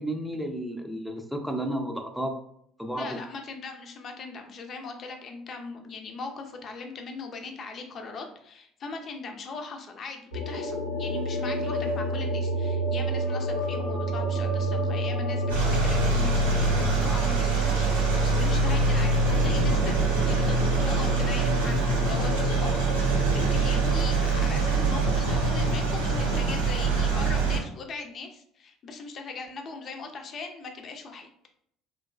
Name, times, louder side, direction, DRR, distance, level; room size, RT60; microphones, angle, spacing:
voice 1, 0.0-2.3 2.8-3.2, right 1 dB, ahead, 4 dB, 0.5 m, -32 dB
voice 2, 2.9-20.6 20.9-31.3, left 4 dB, 45° left, 4 dB, 0.5 m, -39 dB
sound 1, 10.3-26.3, left 1 dB, 80° left, 0.8 m, -29 dB
sound 2, 15.5-27.6, right 5 dB, 85° right, 0.7 m, -25 dB
3.2 x 2.9 x 2.4 m, 0.69 s
figure-of-eight pair, 60°, 0 cm